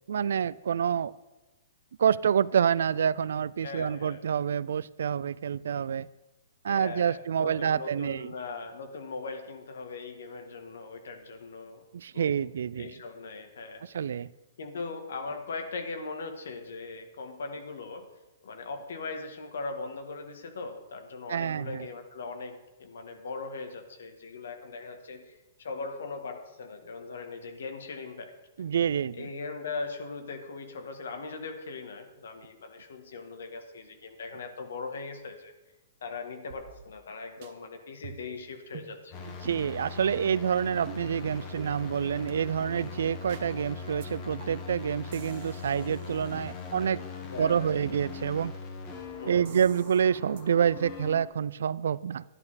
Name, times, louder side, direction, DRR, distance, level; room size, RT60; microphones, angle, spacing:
voice 1, 0.1-1.1 2.0-6.1 6.6-8.3 11.9-12.9 13.8-14.3 21.3-21.9 28.6-29.3 39.3-47.0 47.4-48.5 49.3-52.2, right 8 dB, 75° right, 20 dB, 0.3 m, -27 dB
voice 2, 3.6-4.2 6.7-11.8 12.1-12.5 12.7-13.8 14.6-18.1 18.4-28.3 29.1-35.5 36.0-39.3 47.2-47.7 49.2-49.5, left 4 dB, 80° left, 6 dB, 1.6 m, -40 dB
sound 1, 36.5-37.1 37.4-37.5 38.0-38.4 38.7-38.9 39.5-39.6 40.2-40.5 40.9-41.0 41.6-41.7 42.3-42.4 42.8-42.9 43.3-43.5 44.0-44.1 44.4-44.7 45.1-47.0 49.5-50.0 50.4-50.5, right 9 dB, 45° right, 1.1 m, -49 dB
sound 2, 39.1-51.2, left 5 dB, 30° left, 1.2 m, -41 dB
11.0 x 10.5 x 4.1 m, 1.1 s
hypercardioid pair, 155°, 0 cm